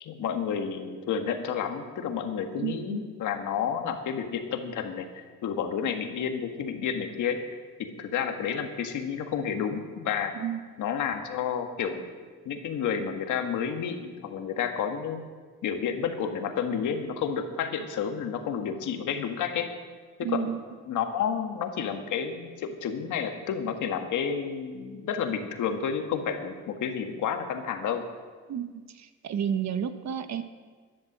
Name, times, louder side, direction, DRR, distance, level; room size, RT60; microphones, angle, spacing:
voice 1, 0.0-7.4 7.8-10.3 10.8-12.1 12.5-15.2 15.6-19.7 20.3-20.5 20.8-28.1, left 7 dB, 80° left, 6 dB, 1.7 m, -30 dB
voice 2, 2.6-3.1 10.3-10.7 20.2-20.6 28.5-30.4, right 9 dB, 65° right, 10 dB, 1.2 m, -31 dB
13.5 x 11.0 x 7.3 m, 1.5 s
cardioid pair, 90°, 30 cm